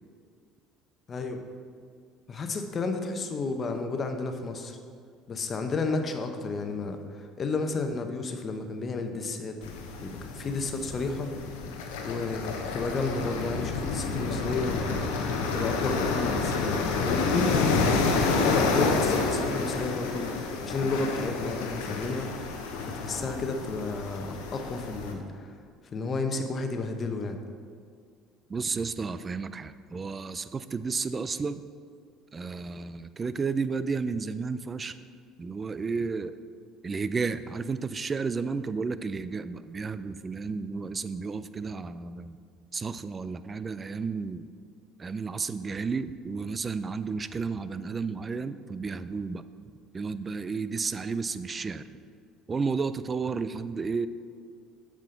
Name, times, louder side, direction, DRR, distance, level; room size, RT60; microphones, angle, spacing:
voice 1, 1.1-1.4 2.3-4.8 5.3-11.3 12.0-15.0 15.5-22.3 22.9-25.5 25.9-27.4, left 3 dB, 40° left, 5 dB, 0.9 m, -32 dB
sound 1, 9.6-25.1, left 4 dB, 80° left, 0.9 m, -29 dB
voice 2, 28.5-31.6 32.3-35.0 35.4-36.3 36.8-42.4 42.7-44.5 45.0-49.4 49.9-52.0 52.5-54.1, right 4 dB, 30° right, 13 dB, 0.4 m, -32 dB
7.4 x 5.0 x 5.8 m, 2.2 s
hypercardioid pair, 75°, 0 cm